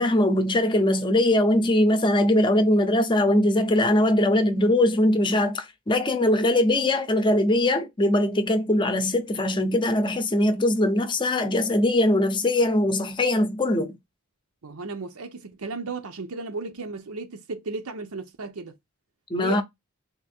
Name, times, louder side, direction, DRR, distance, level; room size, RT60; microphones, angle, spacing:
voice 1, 0.0-13.9 19.3-19.6, left 1 dB, 20° left, 0.6 m, -21 dB
voice 2, 14.6-18.7 19.4-19.6, right 3 dB, 90° right, 0.7 m, -34 dB
3.6 x 2.6 x 4.3 m
head